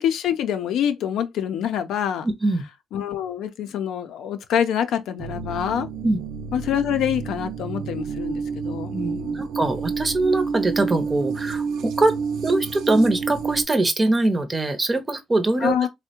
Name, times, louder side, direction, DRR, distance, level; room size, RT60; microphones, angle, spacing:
voice 1, 0.0-2.3 2.9-5.9 6.5-9.4 15.6-15.9, left 9 dB, 85° left, 0.4 m, -26 dB
voice 2, 2.2-2.6 6.0-6.2 8.9-12.2 12.4-15.9, right 2 dB, 20° right, 0.6 m, -22 dB
sound 1, 5.2-13.6, right 5 dB, 85° right, 0.4 m, -29 dB
3.4 x 2.1 x 2.7 m
cardioid pair, 115°, 0 cm